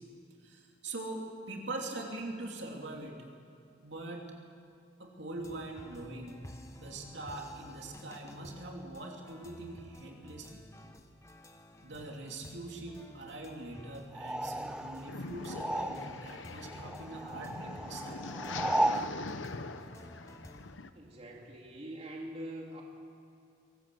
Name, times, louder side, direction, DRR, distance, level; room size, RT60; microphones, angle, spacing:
voice 1, 0.4-3.2 3.8-4.3 5.0-6.4 6.7-10.6 11.8-18.2, right 2 dB, 65° right, 1 dB, 3.0 m, -43 dB
sound 1, 5.3-20.8, left 1 dB, 15° left, 1.2 m, -53 dB
sound 2, 14.1-16.4 16.6-19.1, right 1 dB, 5° right, 0.5 m, -34 dB
sound 3, 15.1-20.9, left 3 dB, 80° left, 1.0 m, -43 dB
voice 2, 20.9-22.8, right 1 dB, 35° right, -1 dB, 2.5 m, -43 dB
23.0 x 19.0 x 7.8 m, 2.5 s
head